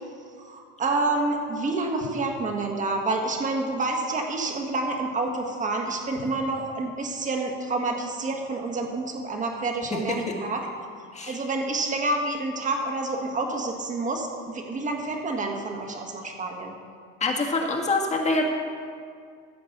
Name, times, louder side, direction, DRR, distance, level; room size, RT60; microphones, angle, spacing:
voice 1, 0.4-10.6 11.3-14.3 14.5-16.7, right 2 dB, 25° right, 2 dB, 1.6 m, -28 dB
voice 2, 17.2-18.5, left 2 dB, 25° left, 1 dB, 1.6 m, -25 dB
14.5 x 5.2 x 7.3 m, 2.2 s
cardioid pair, 145°, 30 cm